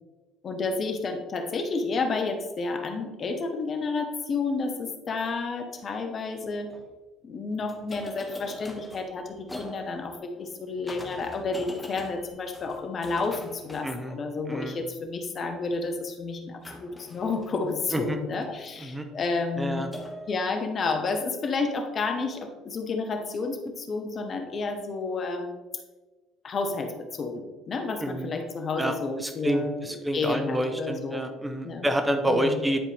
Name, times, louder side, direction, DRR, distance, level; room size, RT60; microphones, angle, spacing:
voice 1, 0.4-6.7 7.2-19.8 20.3-25.6 26.4-31.2 31.6-31.9 32.3-32.6, left 3 dB, 45° left, 5 dB, 1.2 m, -31 dB
sound 1, 5.7-5.8 6.5-6.8 7.7-14.6 16.6-18.6 19.9-20.4, left 1 dB, 15° left, 1.4 m, -43 dB
voice 2, 13.8-14.2 14.5-14.8 17.9-18.2 18.8-19.0 19.6-19.9 28.0-28.3 28.8-32.8, right 1 dB, 15° right, 6 dB, 0.9 m, -28 dB
10.0 x 4.6 x 3.4 m, 1.2 s
hypercardioid pair, 60°, 0 cm